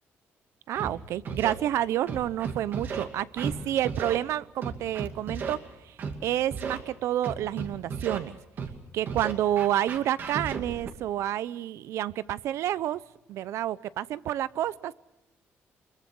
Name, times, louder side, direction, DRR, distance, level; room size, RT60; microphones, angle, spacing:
voice 1, 0.7-5.6 5.8-6.0 6.2-8.4 8.9-13.0 13.3-14.9, right 12 dB, 90° right, 18 dB, 0.7 m, -29 dB
Scratching (performance technique), 0.8-0.9 1.2-1.5 2.1-3.0 3.4-3.5 3.8-4.2 4.6-5.5 6.0-6.1 6.5-6.8 7.2-8.2 8.6-8.7 9.0-10.9, right 5 dB, 45° right, 2.5 m, -34 dB
25.0 x 22.0 x 6.2 m, 0.97 s
cardioid pair, 175°, 5 cm